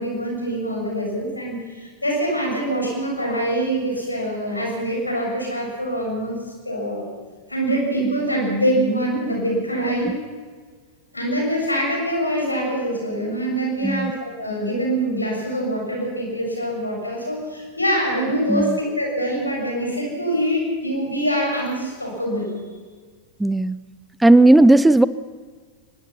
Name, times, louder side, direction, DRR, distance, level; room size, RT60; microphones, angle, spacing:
voice 1, 0.0-6.4 6.6-7.1 7.5-10.1 11.1-22.5, right 1 dB, 85° left, -1 dB, 6.9 m, -24 dB
voice 2, 23.4-23.8 24.2-25.1, right 2 dB, 5° right, 17 dB, 0.5 m, -14 dB
23.0 x 21.0 x 5.9 m, 1.5 s
figure-of-eight pair, 90°, 0 cm